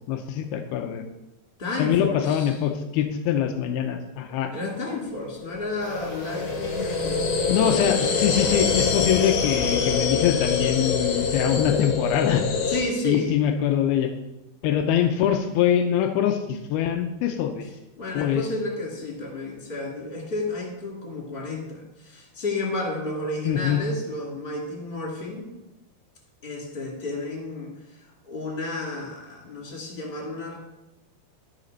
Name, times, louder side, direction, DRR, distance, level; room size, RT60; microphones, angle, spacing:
voice 1, 0.1-1.0 1.8-4.6 7.5-12.5 13.0-14.1 14.6-17.7 18.1-18.4 23.5-23.8, left 9 dB, 90° left, 6 dB, 2.6 m, -23 dB
voice 2, 1.6-2.5 4.5-7.3 12.7-13.3 18.0-25.5 26.4-27.7 28.2-30.6, left 2 dB, 15° left, -2 dB, 2.1 m, -31 dB
sound 1, 4.9-12.8, left 5 dB, 65° left, 2.1 m, -25 dB
sound 2, 5.8-11.9 18.5-18.6, right 4 dB, 45° right, 1.8 m, -41 dB
14.0 x 5.0 x 5.4 m, 0.93 s
omnidirectional pair, 4.5 m